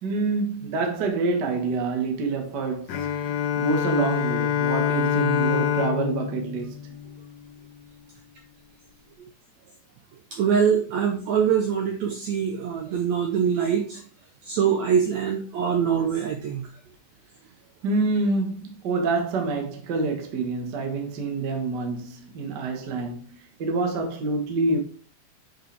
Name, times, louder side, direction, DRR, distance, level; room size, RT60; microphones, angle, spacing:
voice 1, 0.0-3.1 3.6-6.8 17.8-23.2 23.6-24.8, right 3 dB, 65° right, 1.0 m, -27 dB
Bowed string instrument, 2.9-7.6, left 9 dB, 70° left, 1.6 m, -26 dB
voice 2, 10.3-14.0 14.4-16.7, right 7 dB, 80° right, 1.6 m, -23 dB
8.9 x 5.3 x 3.4 m
omnidirectional pair, 4.2 m